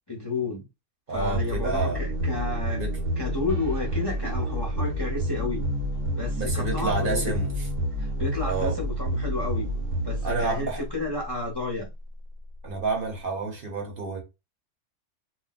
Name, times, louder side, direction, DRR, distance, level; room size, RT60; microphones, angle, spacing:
voice 1, 0.1-0.6 1.1-2.8 3.2-5.6 6.2-7.3 8.0-9.7 10.0-11.9, left 3 dB, 25° left, 0.7 m, -31 dB
voice 2, 1.1-2.0 2.8-3.0 6.3-7.5 8.4-8.8 10.2-10.8 12.6-14.2, right 3 dB, 50° right, 0.9 m, -29 dB
sound 1, 1.1-11.3, equal, 80° right, 1.1 m, -29 dB
2.4 x 2.1 x 3.9 m
omnidirectional pair, 1.3 m